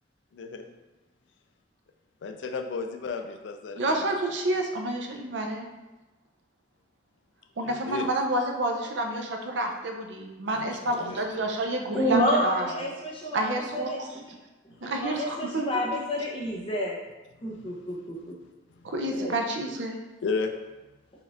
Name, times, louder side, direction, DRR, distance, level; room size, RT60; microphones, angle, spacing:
voice 1, 0.3-0.7 2.2-4.1 7.6-8.1 10.5-11.2 20.2-20.5, left 4 dB, 75° left, 5 dB, 0.4 m, -33 dB
voice 2, 3.8-5.7 7.6-12.7 13.3-14.1 14.8-15.6 18.8-20.0, right 1 dB, 70° right, 3 dB, 0.6 m, -29 dB
voice 3, 11.9-14.2 14.8-17.0 17.4-18.3 19.1-19.3, equal, 30° left, -3 dB, 0.7 m, -29 dB
4.6 x 2.5 x 3.4 m, 1.1 s
head